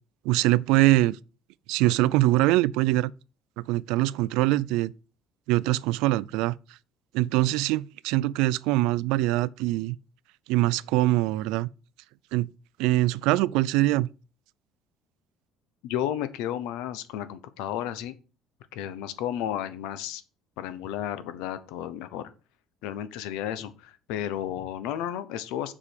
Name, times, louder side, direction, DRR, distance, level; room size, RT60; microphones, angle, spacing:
voice 1, 0.3-1.2 1.7-3.1 3.6-4.9 5.5-6.5 7.1-10.0 10.5-11.7 12.3-12.5 12.8-14.1, right 17 dB, 75° right, 0.3 m, -23 dB
voice 2, 15.8-18.1 18.7-20.2 20.6-22.3 22.8-25.7, left 11 dB, 80° left, 0.9 m, -32 dB
7.4 x 4.9 x 6.7 m
cardioid pair, 165°, 0 cm